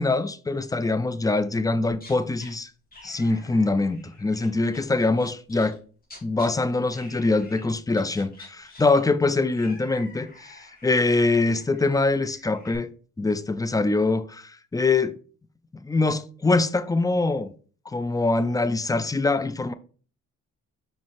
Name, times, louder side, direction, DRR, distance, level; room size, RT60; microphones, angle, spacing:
voice 1, 0.0-2.7 3.0-5.8 6.2-12.9 13.2-15.1 15.8-17.5 17.9-19.7, left 3 dB, 10° left, 0.5 m, -24 dB
sound 1, 1.9-2.5 2.9-6.5 6.9-7.6 7.9-12.8, left 2 dB, 30° left, 3.0 m, -49 dB
5.6 x 5.3 x 3.5 m
cardioid pair, 90°, 30 cm